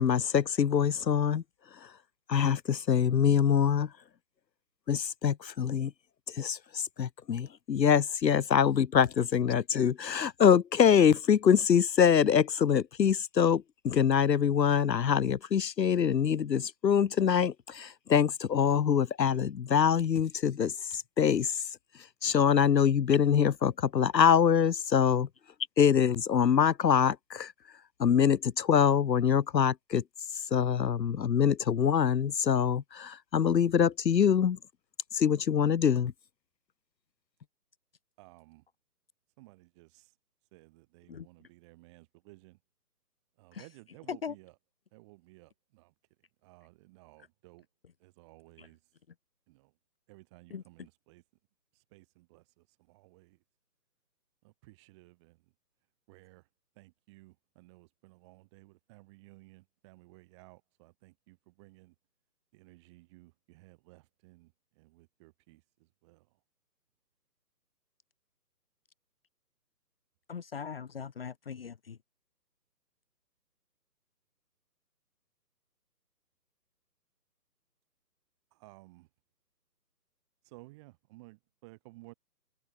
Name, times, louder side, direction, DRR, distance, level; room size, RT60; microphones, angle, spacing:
voice 1, 0.0-1.4 2.3-3.9 4.9-5.9 6.3-21.6 22.2-25.3 25.8-27.5 28.0-30.0 30.5-34.6 35.1-36.1, left 8 dB, 80° left, 1.0 m, -25 dB
voice 2, 38.2-38.7 39.4-40.2 40.5-42.6 43.3-44.6 44.9-47.7 48.0-48.9 49.5-49.8 50.1-51.2 51.7-53.4 54.4-55.5 56.1-56.5 56.7-62.0 62.5-66.4 78.5-79.1 80.4-82.1, right 22 dB, 15° right, 7.8 m, -57 dB
voice 3, 70.3-72.0, left 6 dB, 35° left, 1.8 m, -39 dB
hypercardioid pair, 170°, 50 cm